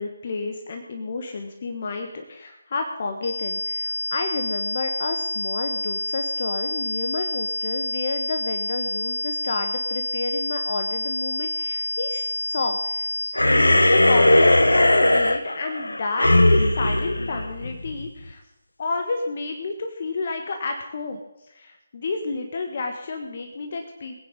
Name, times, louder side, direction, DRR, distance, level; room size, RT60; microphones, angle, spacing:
voice 1, 0.0-13.2 13.5-18.4 18.8-21.2 21.5-24.1, left 3 dB, 45° left, 4 dB, 1.5 m, -30 dB
sound 1, 3.2-13.2, left 1 dB, 75° right, 5.5 m, -28 dB
sound 2, 13.3-18.1, left 1 dB, 75° left, 1.2 m, -18 dB
21.0 x 9.6 x 5.2 m, 0.91 s
figure-of-eight pair, 150°, 0 cm